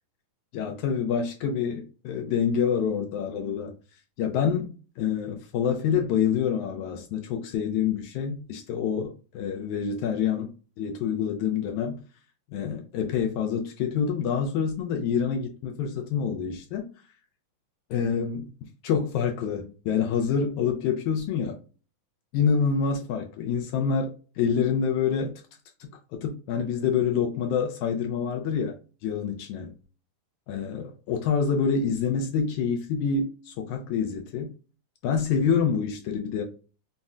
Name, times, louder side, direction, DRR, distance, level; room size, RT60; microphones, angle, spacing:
voice 1, 0.5-3.8 4.2-10.5 10.8-12.0 12.5-16.9 17.9-18.5 18.8-21.6 22.3-25.3 25.8-28.8 29.0-29.7 30.5-34.5 35.0-36.4, left 7 dB, 80° left, 1.8 m, -27 dB
5.4 x 2.1 x 2.4 m
omnidirectional pair, 3.7 m